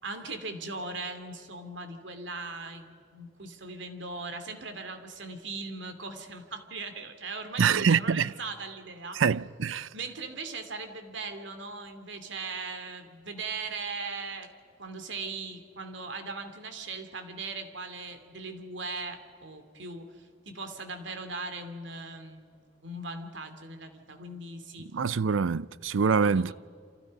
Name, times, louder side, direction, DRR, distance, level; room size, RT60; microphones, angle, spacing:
voice 1, 0.0-9.2 9.9-14.5 14.8-24.9 26.2-26.5, right 3 dB, 70° right, 2.7 m, -39 dB
voice 2, 7.6-8.3 9.2-9.9 24.9-26.5, right 6 dB, 90° right, 0.5 m, -25 dB
29.0 x 27.0 x 5.4 m
head